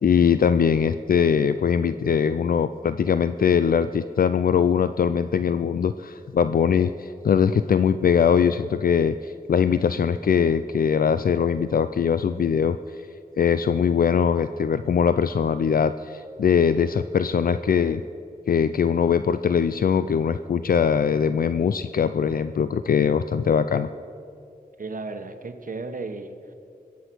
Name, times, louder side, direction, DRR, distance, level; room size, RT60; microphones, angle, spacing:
voice 1, 0.0-12.8 13.4-18.0 18.5-23.9, left 7 dB, 70° left, 12 dB, 0.4 m, -21 dB
voice 2, 24.8-26.5, right 3 dB, 60° right, 7 dB, 1.2 m, -34 dB
21.5 x 8.4 x 6.2 m, 2.6 s
wide cardioid pair, 75°, 16 cm